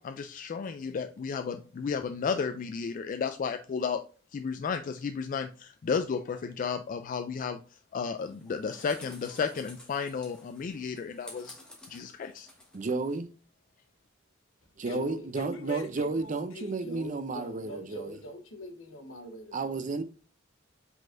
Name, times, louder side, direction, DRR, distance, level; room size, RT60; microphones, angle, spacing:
voice 1, 0.0-4.0 4.3-7.6 7.9-11.6 11.9-12.5, left 5 dB, 40° left, 0.3 m, -33 dB
sound 1, 8.2-13.2, left 1 dB, 5° left, 1.1 m, -52 dB
voice 2, 12.7-13.3 14.8-18.2 19.5-20.0, right 3 dB, 40° right, 0.5 m, -32 dB
voice 3, 14.8-19.9, left 1 dB, 85° left, 1.0 m, -43 dB
5.0 x 3.9 x 2.5 m
head